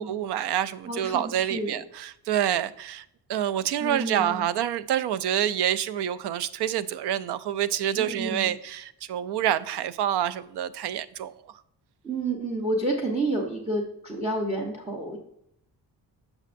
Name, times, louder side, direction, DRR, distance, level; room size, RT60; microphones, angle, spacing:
voice 1, 0.0-3.0 3.3-11.3, right 10 dB, 80° right, 0.5 m, -27 dB
voice 2, 0.9-1.8 3.8-4.5 8.0-8.5 12.0-15.2, right 2 dB, 15° right, 0.9 m, -30 dB
7.4 x 6.2 x 2.5 m
wide cardioid pair, 140°, 40 cm